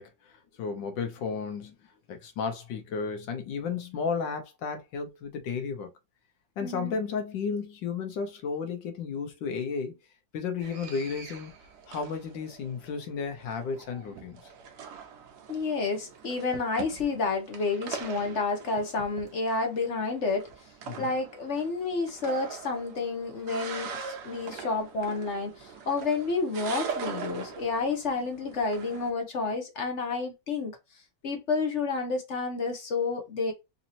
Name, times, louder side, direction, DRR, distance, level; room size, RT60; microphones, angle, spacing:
voice 1, 0.0-1.8 2.1-5.9 6.6-10.0 10.3-11.5 11.9-14.4 20.9-21.1, left 5 dB, 80° left, 1.6 m, -33 dB
voice 2, 6.6-6.9 15.5-20.5 21.0-30.7 31.2-33.5, left 3 dB, 50° left, 0.9 m, -30 dB
sound 1, 10.6-29.1, right 6 dB, 70° right, 1.3 m, -42 dB
4.1 x 2.9 x 2.6 m
omnidirectional pair, 2.0 m